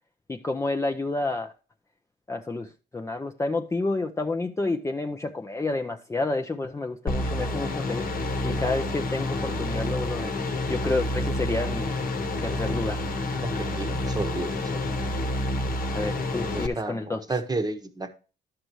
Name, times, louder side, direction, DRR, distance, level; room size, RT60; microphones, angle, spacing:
voice 1, 0.3-1.5 2.3-2.7 2.9-8.0 8.4-10.3 10.7-11.9 12.4-13.0 15.9-17.2, left 2 dB, 15° left, 0.5 m, -29 dB
sound 1, 7.1-16.7, left 1 dB, 45° left, 1.1 m, -28 dB
voice 2, 13.4-14.8 16.4-18.1, right 3 dB, 20° right, 1.0 m, -32 dB
11.0 x 6.7 x 3.1 m
cardioid pair, 90°, 20 cm